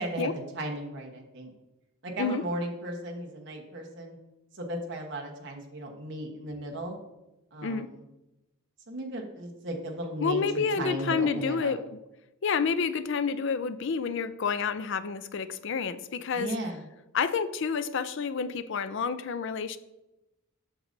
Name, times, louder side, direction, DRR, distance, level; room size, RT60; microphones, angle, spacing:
voice 1, 0.0-1.5 2.0-4.2 4.5-7.0 7.5-8.0 8.9-11.7 16.3-16.9, right 1 dB, 55° right, 0 dB, 1.2 m, -35 dB
voice 2, 10.2-11.8 12.4-16.5 17.1-19.8, left 5 dB, 55° left, 13 dB, 0.4 m, -29 dB
8.7 x 6.4 x 2.7 m, 0.97 s
head